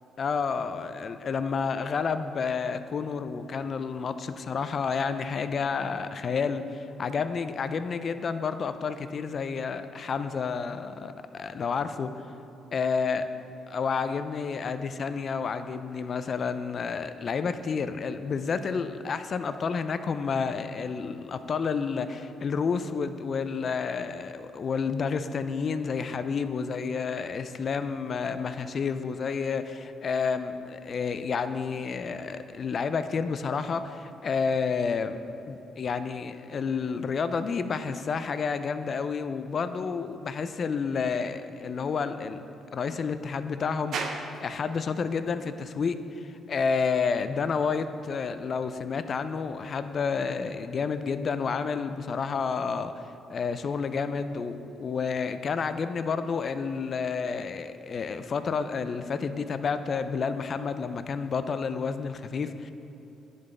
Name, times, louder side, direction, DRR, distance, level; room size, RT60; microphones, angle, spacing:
voice 1, 0.2-12.1 12.7-13.2 13.7-35.2 35.5-42.4 42.7-53.0 53.3-62.7, left 5 dB, 50° left, 11 dB, 0.3 m, -30 dB
sound 1, 43.9-61.4, right 4 dB, 65° right, 0.5 m, -47 dB
10.5 x 4.0 x 3.3 m, 2.9 s
cardioid pair, 90°, 0 cm